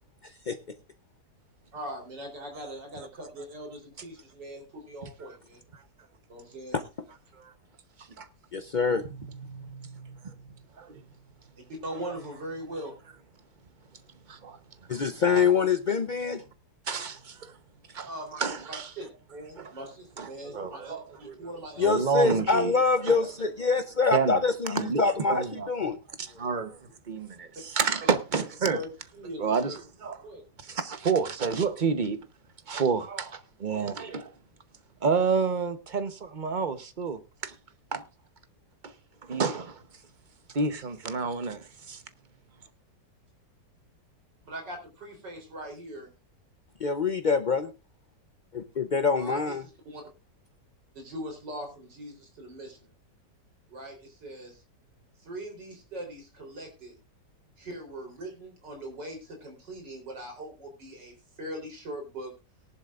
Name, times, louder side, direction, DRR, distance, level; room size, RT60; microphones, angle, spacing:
voice 1, 1.7-5.6 6.3-6.8 11.7-12.9 18.0-18.4 18.7-22.0 28.7-28.9 29.1-29.7 30.2-30.4 44.4-46.1 49.2-49.5 49.8-50.0 50.9-52.8 53.7-54.6 55.2-56.9 57.6-62.3, right 1 dB, 80° right, 4.4 m, -41 dB
voice 2, 8.5-9.0 14.9-16.4 21.8-26.0 46.8-47.7 48.5-49.6, left 5 dB, 85° left, 0.4 m, -25 dB
voice 3, 9.4-10.3 10.8-11.0 14.3-14.6 16.9-17.5 17.9-18.1 18.4-18.9 19.6-19.7 20.2-21.4 21.8-22.7 23.0-23.2 24.1-24.4 24.7-25.0 25.3-25.7 26.2-26.8 27.1-28.8 29.4-30.2 30.6-32.2 32.7-34.3 35.0-37.5 37.9-38.0 38.8-38.9 39.2-39.8 40.5-42.0, right 5 dB, 35° right, 0.9 m, -29 dB
18.5 x 11.0 x 2.5 m
omnidirectional pair, 1.9 m